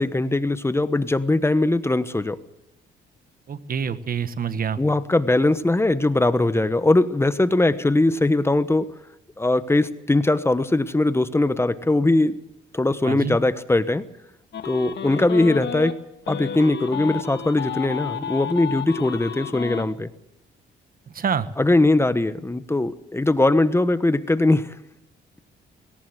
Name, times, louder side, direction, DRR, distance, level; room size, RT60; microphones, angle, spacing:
voice 1, 0.0-2.4 4.8-8.9 9.4-12.3 12.7-14.0 14.6-16.0 16.3-20.1 21.6-24.7, left 2 dB, 10° left, 13 dB, 1.1 m, -20 dB
voice 2, 3.5-4.8 13.0-13.4 21.1-21.5, right 7 dB, 45° right, 13 dB, 1.4 m, -26 dB
sound 1, 14.5-15.9 16.3-19.9, left 8 dB, 60° left, 1.8 m, -31 dB
18.5 x 18.0 x 7.9 m, 0.83 s
cardioid pair, 90°, 20 cm